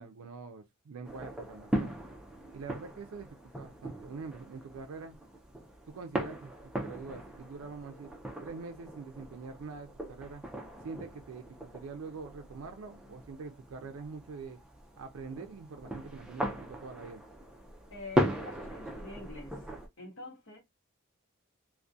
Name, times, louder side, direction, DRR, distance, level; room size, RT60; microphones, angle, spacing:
voice 1, 0.0-1.9 2.5-5.2 5.9-8.1 8.4-10.5 10.8-14.6 15.0-17.2, right 4 dB, 80° right, 0.4 m, -44 dB
sound 1, 1.0-19.9, equal, 5° right, 0.4 m, -39 dB
voice 2, 17.9-19.7 20.0-20.6, left 2 dB, 65° left, 0.9 m, -46 dB
2.3 x 2.1 x 2.6 m
head